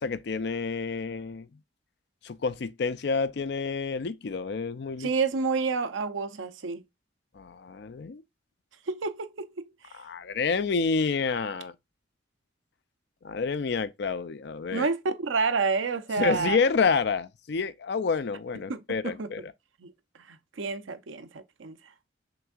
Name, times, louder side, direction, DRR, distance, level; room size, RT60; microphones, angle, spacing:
voice 1, 0.0-1.5 2.2-5.1 7.4-8.2 10.0-11.7 13.2-14.9 16.2-19.5, left 5 dB, 60° left, 0.4 m, -28 dB
voice 2, 5.0-6.8 8.9-9.7 14.7-16.6 18.7-19.3 19.8-19.9 20.3-21.8, right 4 dB, 85° right, 0.6 m, -29 dB
6.0 x 3.5 x 2.3 m
head